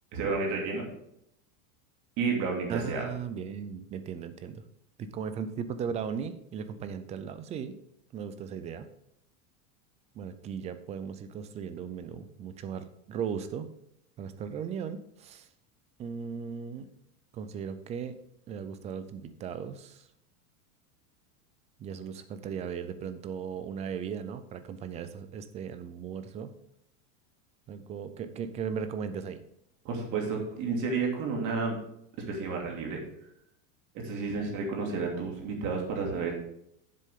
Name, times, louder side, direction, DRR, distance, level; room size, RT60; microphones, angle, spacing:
voice 1, 0.1-0.9 2.2-3.0 29.8-31.8 32.3-33.0 33.9-36.3, right 4 dB, 40° right, 0 dB, 2.7 m, -31 dB
voice 2, 2.7-4.6 5.0-7.8 8.1-8.9 10.2-13.7 14.2-15.5 16.0-16.9 17.3-18.2 18.5-20.1 21.8-26.5 27.7-29.4, right 7 dB, 15° right, 11 dB, 0.3 m, -37 dB
10.0 x 7.6 x 3.6 m, 0.75 s
supercardioid pair, 145°, 43 cm